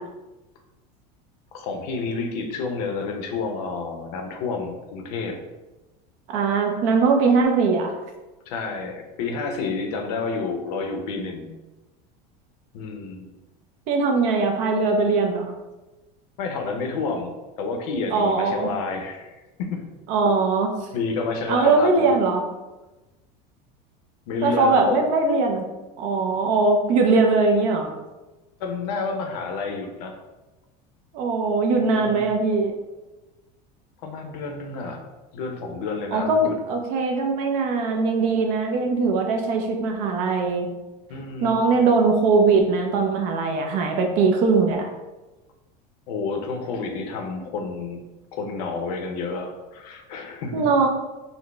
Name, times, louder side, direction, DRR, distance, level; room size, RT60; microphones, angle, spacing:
voice 1, 1.5-5.4 8.5-11.5 12.7-13.3 16.4-19.9 20.9-22.1 24.3-25.0 28.6-30.2 31.8-32.3 34.0-35.1 35.3-36.6 41.1-41.7 46.1-48.0 48.3-50.6, left 4 dB, 65° left, 4 dB, 0.6 m, -30 dB
voice 2, 6.3-7.9 13.9-15.5 18.1-18.7 20.1-20.7 21.5-22.4 24.4-25.6 26.0-27.9 31.1-32.7 36.1-40.7 41.4-44.9 50.5-50.9, right 4 dB, 40° right, 3 dB, 0.4 m, -21 dB
3.9 x 2.0 x 3.2 m, 1.1 s
cardioid pair, 175°, 21 cm